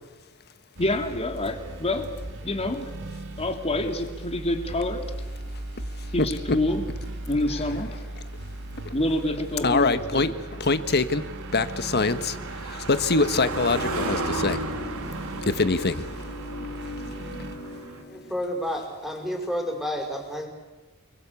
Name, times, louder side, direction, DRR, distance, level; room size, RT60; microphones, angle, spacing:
sound 1, 0.7-17.6, right 1 dB, 60° right, 2.1 m, -38 dB
voice 1, 0.8-2.1 2.4-2.9 3.4-5.0 6.1-6.9 7.3-7.9 8.9-10.3, left 1 dB, 30° left, 6 dB, 2.7 m, -27 dB
voice 2, 6.2-6.6 7.5-7.6 8.8-8.9 9.6-11.2 11.5-12.4 12.6-14.6 15.5-16.0, left 3 dB, 50° left, 11 dB, 1.5 m, -24 dB
Car passing by, 6.9-18.0, right 2 dB, 80° right, 2.6 m, -36 dB
sound 2, 13.3-18.4, left 2 dB, 70° left, 5.1 m, -39 dB
voice 3, 18.1-20.5, equal, ahead, 2 dB, 5.6 m, -30 dB
29.5 x 21.5 x 8.4 m, 1.2 s
head